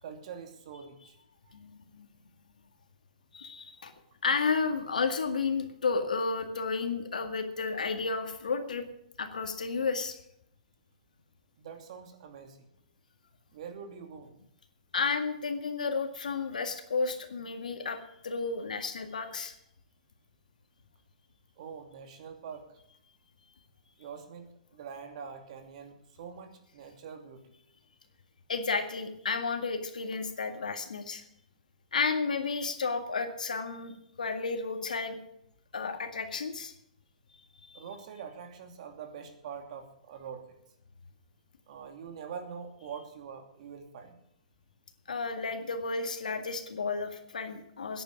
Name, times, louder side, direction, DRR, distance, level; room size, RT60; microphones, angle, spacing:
voice 1, 0.0-1.2 1.4-1.6 11.6-12.7 13.5-14.4 21.6-22.8 24.0-27.5 37.7-40.6 41.7-44.2, right 6 dB, 60° right, 6 dB, 2.7 m, -44 dB
voice 2, 1.5-2.1 3.3-3.9 4.2-8.8 9.2-10.2 14.9-19.5 28.5-31.2 31.9-35.2 35.7-36.7 37.7-37.8 45.1-48.0, left 4 dB, 90° left, 7 dB, 2.0 m, -32 dB
10.0 x 9.5 x 9.5 m, 0.72 s
hypercardioid pair, 130°, 4 cm